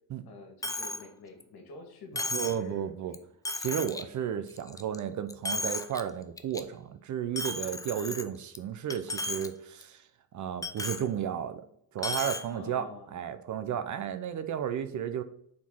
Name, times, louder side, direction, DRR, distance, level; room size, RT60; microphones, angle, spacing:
voice 1, 0.3-2.9 3.2-3.3 12.5-13.1, left 2 dB, 55° left, 4 dB, 2.0 m, -47 dB
Coin (dropping), 0.6-1.0 1.4-1.5 2.2-2.6 3.1-3.2 3.5-4.0 4.5-5.0 5.3-6.0 6.4-6.6 7.4-8.6 8.9-9.5 9.8-9.9 10.6-11.0 12.0-12.4, left 2 dB, 10° left, 0.3 m, -34 dB
voice 2, 2.3-3.1 3.6-10.0 10.3-11.6 11.9-15.2, right 9 dB, 45° right, 10 dB, 0.6 m, -33 dB
4.5 x 4.3 x 5.5 m, 0.68 s
cardioid pair, 120°, 43 cm